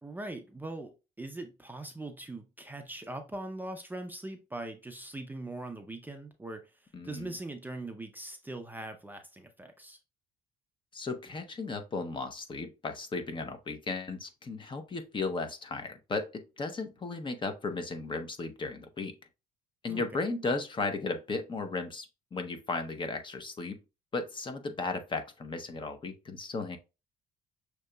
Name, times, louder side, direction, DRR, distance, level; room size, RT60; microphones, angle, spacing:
voice 1, 0.0-6.7 7.0-10.0 19.9-20.0, right 2 dB, 10° right, 0.5 m, -41 dB
voice 2, 6.9-7.3 10.9-19.1 19.8-23.8 24.1-26.8, left 3 dB, 30° left, 0.7 m, -35 dB
6.2 x 2.8 x 2.2 m
cardioid pair, 110°, 17 cm